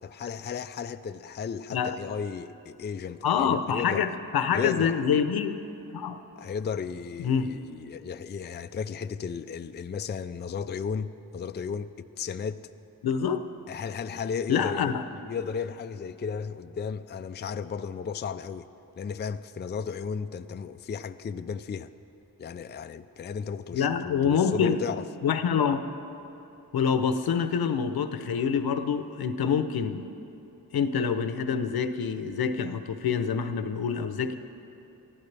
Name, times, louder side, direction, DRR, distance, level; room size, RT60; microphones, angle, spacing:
voice 1, 0.0-4.1 4.5-5.0 6.4-12.7 13.7-18.7 19.0-21.9 22.4-25.0, left 6 dB, 30° left, 0.4 m, -34 dB
voice 2, 3.2-5.6 5.9-6.2 7.2-7.5 13.0-13.4 14.5-15.0 23.7-24.8 25.2-25.8 26.7-30.1 30.7-34.3, left 7 dB, 75° left, 0.8 m, -26 dB
23.0 x 14.5 x 3.4 m
cardioid pair, 65°, 37 cm